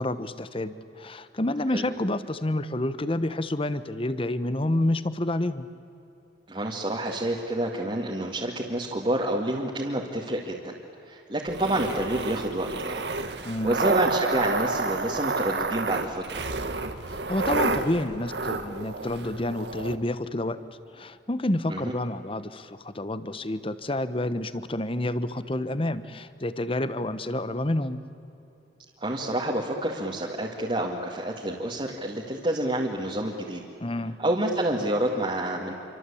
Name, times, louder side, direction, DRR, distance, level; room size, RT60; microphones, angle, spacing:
voice 1, 0.0-5.7 13.4-13.8 17.1-20.6 20.9-28.0 33.8-34.2, left 1 dB, 30° left, 13 dB, 1.0 m, -29 dB
voice 2, 6.5-10.7 11.0-13.0 13.6-16.4 21.7-21.9 29.0-33.6 34.2-35.7, right 1 dB, 30° right, -2 dB, 2.1 m, -28 dB
sound 1, 11.5-20.0, right 3 dB, 70° right, 1.6 m, -30 dB
27.5 x 25.0 x 8.6 m, 3.0 s
head